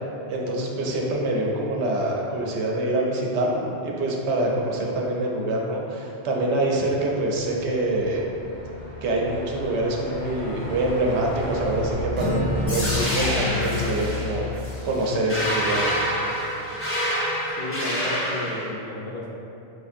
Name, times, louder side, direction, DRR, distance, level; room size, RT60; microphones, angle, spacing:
voice 1, 0.3-8.2 9.0-15.9, right 1 dB, 80° right, -1 dB, 0.8 m, -25 dB
Truck, 7.0-16.2, left 1 dB, 80° left, 1.5 m, -34 dB
Acoustic guitar, 12.2-15.8, left 3 dB, 35° right, 0.5 m, -32 dB
sound 1, 12.7-18.7, equal, 20° left, 0.4 m, -27 dB
voice 2, 17.5-19.3, left 1 dB, 60° left, -3 dB, 0.7 m, -32 dB
4.6 x 2.5 x 2.4 m, 2.8 s
omnidirectional pair, 1.1 m